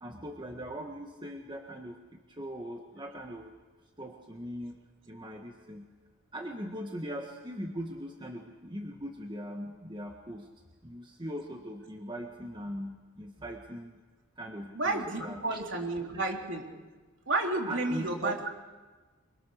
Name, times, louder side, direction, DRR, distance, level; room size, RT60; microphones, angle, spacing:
voice 1, 0.0-3.5 4.0-4.8 5.1-5.9 6.3-10.5 10.8-14.0 14.4-15.6 16.1-16.2 17.6-18.4, equal, 20° right, 3 dB, 1.4 m, -40 dB
voice 2, 14.7-16.7 17.3-18.5, right 2 dB, 55° right, 2 dB, 3.4 m, -31 dB
24.5 x 23.5 x 6.5 m, 1.3 s
head